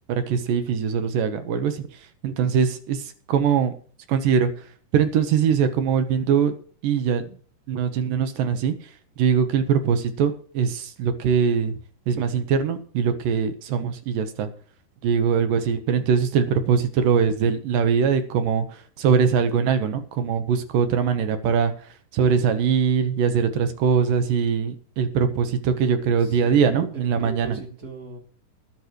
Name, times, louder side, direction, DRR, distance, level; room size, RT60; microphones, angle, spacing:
voice 1, 0.1-1.9 2.2-3.0 3.3-3.7 4.1-4.5 4.9-6.5 6.8-7.3 7.7-8.8 9.2-11.7 12.1-14.5 15.0-18.6 19.0-21.7 22.1-27.6, right 7 dB, 70° right, 9 dB, 2.5 m, -22 dB
voice 2, 26.2-28.2, right 2 dB, 25° right, 1 dB, 3.1 m, -39 dB
19.5 x 11.0 x 3.1 m, 0.43 s
omnidirectional pair, 4.7 m